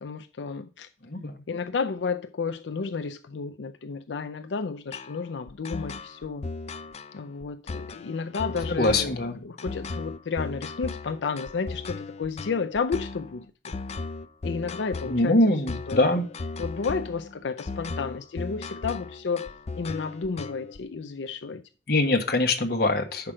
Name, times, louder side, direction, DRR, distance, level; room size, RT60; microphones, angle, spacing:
voice 1, 0.0-0.9 1.5-6.5 7.1-13.4 14.4-16.1 16.6-21.6, left 5 dB, 90° left, 0.5 m, -32 dB
sound 1, 4.9-20.8, left 3 dB, 35° left, 0.5 m, -36 dB
voice 2, 8.7-9.4 15.0-16.3 21.9-23.3, left 2 dB, 60° left, 1.3 m, -23 dB
8.7 x 5.9 x 4.9 m
head